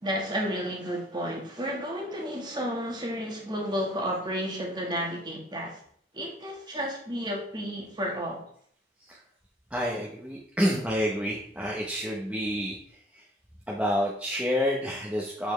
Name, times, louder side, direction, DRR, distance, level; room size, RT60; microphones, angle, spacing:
voice 1, 0.0-5.8 6.1-8.5, equal, 25° right, 1.5 m, -32 dB
voice 2, 9.7-13.3 13.7-15.5, equal, 5° right, 0.9 m, -29 dB
7.0 x 6.9 x 3.2 m
head